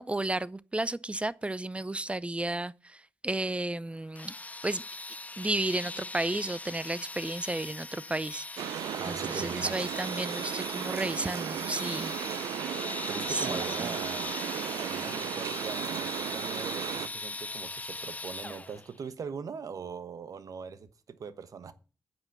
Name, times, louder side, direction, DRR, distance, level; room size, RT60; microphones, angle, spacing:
voice 1, 0.0-4.3 4.6-4.8 5.4-12.1 13.3-13.9, right 2 dB, 20° right, 0.6 m, -33 dB
sound 1, 3.9-18.8, left 6 dB, 55° left, 1.5 m, -59 dB
sound 2, 4.1-18.9, left 2 dB, 25° left, 0.6 m, -40 dB
Binaural Light Rain Sound Noise Night Skopje, 8.6-17.1, right 10 dB, 80° right, 0.5 m, -35 dB
voice 2, 9.0-9.8 13.1-14.3 14.8-21.7, right 6 dB, 65° right, 1.1 m, -41 dB
9.6 x 6.1 x 7.2 m
supercardioid pair, 40°, 6 cm